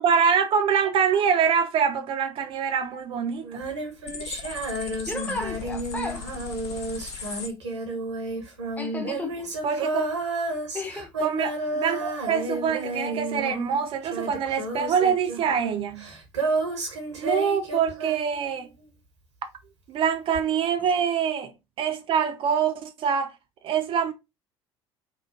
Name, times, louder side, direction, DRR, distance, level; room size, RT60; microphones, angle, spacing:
voice 1, 0.0-3.6 9.6-10.1 11.2-16.1 17.2-18.7 19.9-21.5 21.8-23.3 23.6-24.1, right 7 dB, 40° right, 0.4 m, -25 dB
Female singing, 3.4-18.8 20.3-20.4, right 2 dB, 75° right, 0.8 m, -31 dB
sound 1, 4.1-7.5, left 6 dB, 70° left, 0.5 m, -38 dB
voice 2, 5.1-6.3 8.8-9.5 10.7-11.1, left 2 dB, 10° left, 0.6 m, -34 dB
2.9 x 2.3 x 2.5 m
figure-of-eight pair, 60°, 15 cm